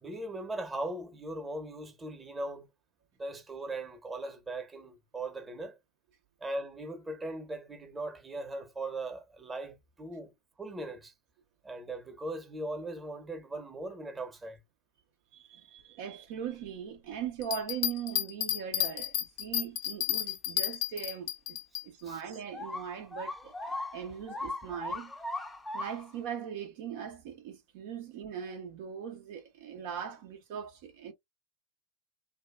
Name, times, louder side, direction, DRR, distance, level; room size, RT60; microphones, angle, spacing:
voice 1, 0.0-2.7 3.2-5.8 6.4-11.1 11.6-14.6 22.0-22.2, right 2 dB, 15° right, 0.9 m, -39 dB
voice 2, 15.3-21.6 21.8-25.1 25.7-31.1, right 8 dB, 60° right, 0.6 m, -40 dB
Bell, 17.4-21.8 22.3-22.4, left 13 dB, 55° left, 0.6 m, -32 dB
sound 1, 22.5-26.2, left 2 dB, 10° left, 0.5 m, -38 dB
2.6 x 2.3 x 2.3 m
hypercardioid pair, 90°, 0 cm